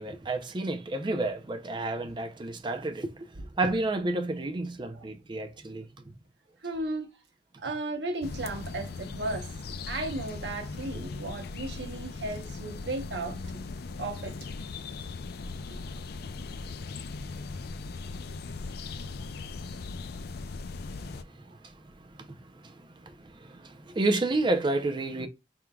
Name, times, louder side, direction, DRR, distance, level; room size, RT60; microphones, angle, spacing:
voice 1, 0.0-3.1 3.6-5.9 23.1-23.2 23.5-25.3, right 2 dB, 25° right, 0.5 m, -30 dB
voice 2, 6.6-7.1 7.6-9.5 9.9-13.4 14.0-14.5, right 2 dB, 75° right, 1.0 m, -35 dB
sound 1, 8.2-21.2, left 3 dB, 60° left, 0.4 m, -39 dB
4.5 x 3.6 x 2.3 m
head